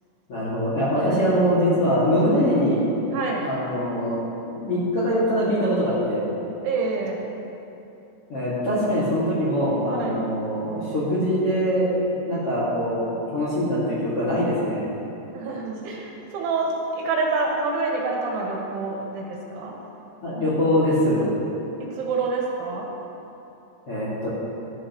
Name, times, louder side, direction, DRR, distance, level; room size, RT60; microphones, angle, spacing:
voice 1, 0.3-2.8 3.4-4.2 4.4-6.2 8.3-11.9 12.2-14.9 20.2-21.2 23.9-24.3, equal, 45° left, -9 dB, 2.0 m, -23 dB
voice 2, 3.1-3.5 6.6-7.2 10.0-10.2 15.3-19.7 21.8-22.9, right 3 dB, 75° right, -2 dB, 3.7 m, -27 dB
16.0 x 11.5 x 3.1 m, 2.8 s
omnidirectional pair, 5.7 m